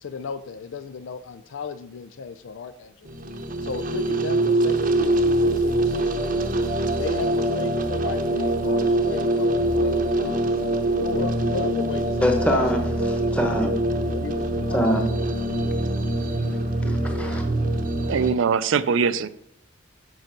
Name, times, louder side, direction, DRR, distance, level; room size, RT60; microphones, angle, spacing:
voice 1, 0.0-3.1 3.6-6.5 6.9-12.9 14.1-15.5 17.4-17.5, left 5 dB, 75° left, 0.4 m, -35 dB
sound 1, 3.1-18.3, right 1 dB, 45° right, 0.7 m, -24 dB
voice 2, 12.2-12.8 13.1-13.7 14.7-15.0 16.9-17.4, equal, 5° left, 1.1 m, -23 dB
voice 3, 18.1-19.3, right 6 dB, 80° right, 0.4 m, -21 dB
7.6 x 4.7 x 5.9 m
head